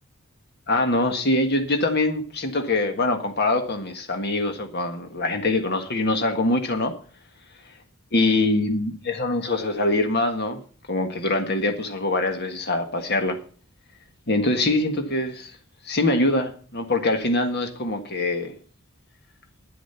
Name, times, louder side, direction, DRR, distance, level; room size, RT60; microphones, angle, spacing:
voice 1, 0.7-6.9 8.1-10.6 10.9-13.4 14.3-15.5 15.8-18.5, left 2 dB, 50° left, 1.6 m, -23 dB
10.5 x 10.0 x 5.7 m
head